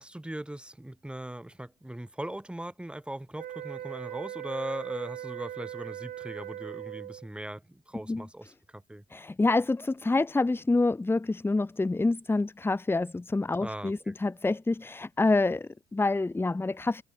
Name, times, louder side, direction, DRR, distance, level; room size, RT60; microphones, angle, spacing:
voice 1, 0.0-9.0 13.6-14.1, right 1 dB, 5° right, 6.8 m, -39 dB
sound 1, 3.4-7.3, right 11 dB, 60° right, 2.0 m, -40 dB
voice 2, 9.1-17.0, left 3 dB, 15° left, 1.6 m, -27 dB
open air
cardioid pair, 110°, 17 cm